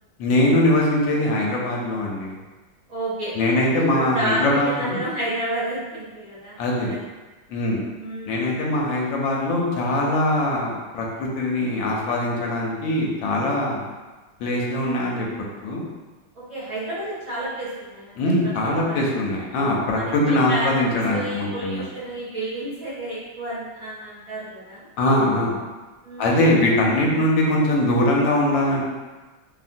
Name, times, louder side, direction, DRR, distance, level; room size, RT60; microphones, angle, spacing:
voice 1, 0.2-2.4 3.4-5.0 6.6-6.9 7.5-7.8 8.3-13.8 14.4-15.3 15.6-15.8 18.2-21.8 25.0-25.6 26.2-28.8, left 1 dB, 75° left, -2 dB, 1.3 m, -22 dB
voice 2, 2.9-3.4 3.8-7.0 8.0-8.5 16.3-18.2 18.9-19.0 19.9-20.7 21.1-24.9 26.0-26.4, right 1 dB, 60° right, -10 dB, 0.8 m, -30 dB
2.8 x 2.7 x 2.5 m, 1.3 s
omnidirectional pair, 2.2 m